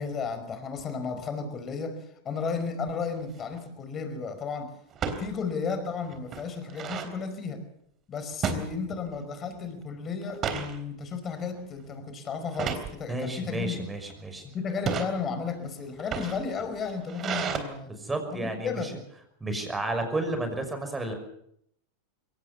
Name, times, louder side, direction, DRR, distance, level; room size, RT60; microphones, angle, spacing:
voice 1, 0.0-4.7 5.2-7.6 8.1-13.8 14.4-17.9 18.4-19.0, left 5 dB, 30° left, 9 dB, 5.1 m, -33 dB
sound 1, 3.2-3.5 4.9-5.2 5.7-5.8 6.1-7.1 8.4-9.2 9.6-9.8 10.2-10.7 11.3-11.6 12.5-12.9 13.7-14.1 14.7-15.1 15.9-17.6, right 6 dB, 35° right, 3.5 m, -32 dB
voice 2, 13.1-14.4 17.9-18.9 19.4-21.1, right 2 dB, 15° right, 6 dB, 5.8 m, -32 dB
22.5 x 18.0 x 7.2 m, 0.71 s
hypercardioid pair, 100°, 0 cm